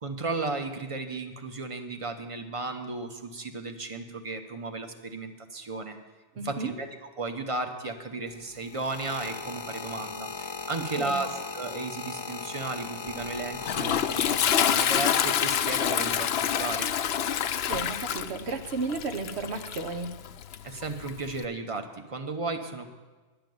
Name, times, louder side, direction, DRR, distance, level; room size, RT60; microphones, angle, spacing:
voice 1, 0.0-6.0 6.4-16.9 20.6-22.9, right 3 dB, 35° right, 6 dB, 0.9 m, -34 dB
voice 2, 6.3-6.7 10.7-11.2 17.7-20.1, right 3 dB, 80° right, 7 dB, 1.2 m, -33 dB
sound 1, 8.3-15.1 15.9-16.3, left 5 dB, 35° left, 0.4 m, -38 dB
Toilet flush, 13.1-21.4, left 9 dB, 75° left, 0.8 m, -28 dB
10.5 x 6.9 x 9.3 m, 1.3 s
omnidirectional pair, 1.1 m